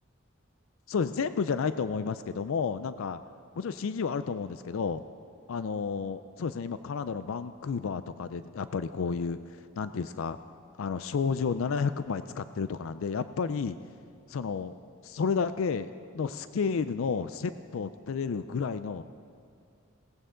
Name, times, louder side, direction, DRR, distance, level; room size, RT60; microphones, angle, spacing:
voice 1, 0.9-3.2 3.6-5.0 5.5-10.4 10.8-13.8 14.3-14.8 15.0-19.0, left 5 dB, 70° left, 12 dB, 0.4 m, -31 dB
21.0 x 17.5 x 3.8 m, 2.2 s
head